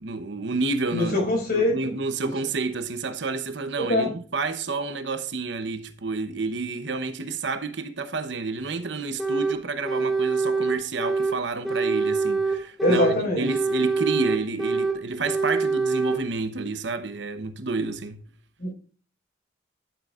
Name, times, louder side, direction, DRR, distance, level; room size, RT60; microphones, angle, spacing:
voice 1, 0.0-18.2, right 3 dB, 70° right, 0.9 m, -30 dB
voice 2, 0.9-1.9 2.2-2.3 3.8-4.1 12.8-13.5 18.6-18.7, left 1 dB, 50° left, 5.0 m, -23 dB
sound 1, 9.2-9.6 9.9-11.4 11.6-13.2 13.5-15.0 15.2-16.2, right 4 dB, ahead, 1.4 m, -25 dB
11.5 x 7.8 x 2.4 m
head